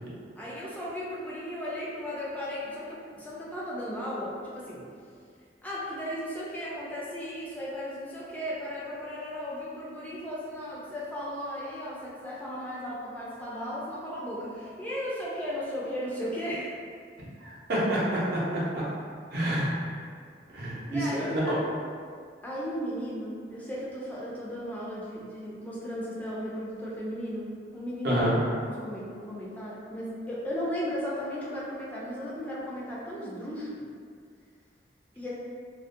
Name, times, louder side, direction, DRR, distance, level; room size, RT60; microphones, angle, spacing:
voice 1, 0.4-4.8 5.6-16.7 20.9-21.6 22.4-27.5 27.7-28.3 28.6-33.8 35.2-35.3, equal, 10° left, -7 dB, 0.3 m, -35 dB
voice 2, 17.4-18.8 19.3-19.7 20.5-21.4 28.0-28.3, right 1 dB, 65° right, -7 dB, 0.7 m, -28 dB
2.4 x 2.1 x 2.5 m, 2.1 s
head